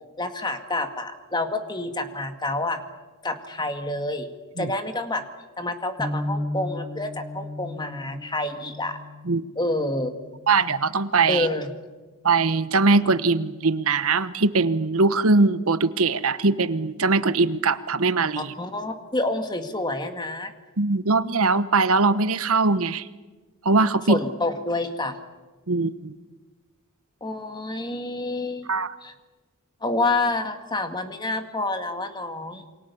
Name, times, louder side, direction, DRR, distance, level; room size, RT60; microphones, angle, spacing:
voice 1, 0.2-2.8 3.2-4.3 4.6-5.2 5.6-9.0 9.6-10.1 11.3-11.7 18.4-20.5 24.1-25.2 27.2-28.7 29.0-29.1 29.8-32.6, left 2 dB, 20° left, 7 dB, 1.9 m, -28 dB
sound 1, 6.0-12.1, left 1 dB, ahead, 2.0 m, -36 dB
voice 2, 10.5-11.5 12.2-18.5 20.8-23.1 23.6-24.2 25.7-26.1 28.7-28.9, right 3 dB, 75° right, 14 dB, 1.1 m, -21 dB
28.0 x 24.0 x 7.0 m, 1.3 s
head